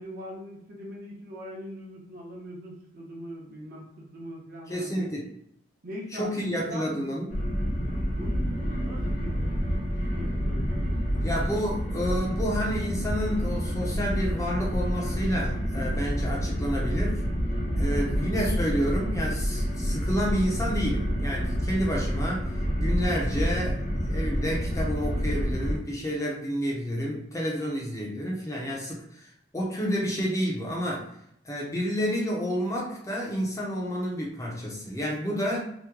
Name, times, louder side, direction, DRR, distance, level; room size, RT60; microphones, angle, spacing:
voice 1, 0.0-5.1 5.8-7.2 8.1-9.4 9.9-11.6, equal, 50° right, -3 dB, 0.9 m, -41 dB
voice 2, 4.7-5.3 6.2-7.4 11.2-17.2 17.8-22.5 22.8-31.1 31.4-35.6, equal, 15° left, -3 dB, 0.6 m, -30 dB
sound 1, 7.3-25.8, equal, 40° left, 0.9 m, -28 dB
2.9 x 2.1 x 3.6 m, 0.72 s
head